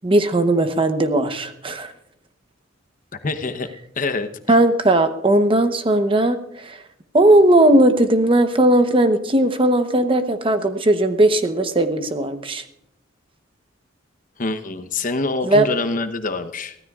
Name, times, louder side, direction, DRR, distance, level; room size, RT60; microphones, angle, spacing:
voice 1, 0.0-1.9 4.5-6.8 7.1-12.6 15.4-15.7, right 1 dB, 30° right, 8 dB, 0.9 m, -17 dB
voice 2, 3.2-3.7 4.0-4.3 14.4-16.8, left 3 dB, 45° left, 9 dB, 0.9 m, -25 dB
23.5 x 15.5 x 2.4 m, 0.78 s
head